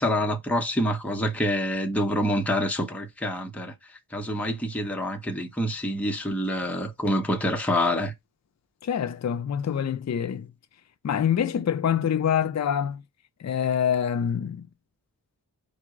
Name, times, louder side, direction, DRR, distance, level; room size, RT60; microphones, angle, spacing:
voice 1, 0.0-8.1, equal, 5° left, 0.7 m, -27 dB
voice 2, 8.8-10.5 11.0-13.0 13.4-14.7, left 8 dB, 45° left, 0.4 m, -25 dB
4.6 x 2.1 x 4.6 m
wide cardioid pair, 55°, 38 cm